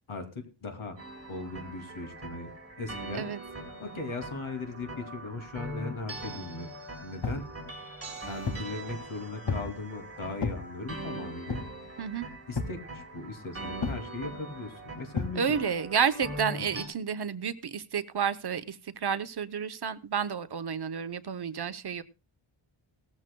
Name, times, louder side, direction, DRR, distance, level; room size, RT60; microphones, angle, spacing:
voice 1, 0.1-1.0 1.3-3.3 3.8-6.7 7.0-7.5 8.3-11.6 12.5-15.4 16.6-16.8, left 3 dB, 75° left, 5 dB, 2.8 m, -38 dB
sound 1, 1.0-16.9, right 2 dB, 30° right, 4.8 m, -42 dB
sound 2, 7.2-7.5 8.1-8.7 9.5-9.8 10.4-10.6 11.5-11.8 12.6-12.8 13.8-14.1 15.2-15.4, left 4 dB, 55° left, 2.0 m, -33 dB
voice 2, 15.4-22.0, right 7 dB, 50° right, 11 dB, 0.8 m, -30 dB
18.5 x 14.0 x 2.2 m, 0.29 s
wide cardioid pair, 140°, 49 cm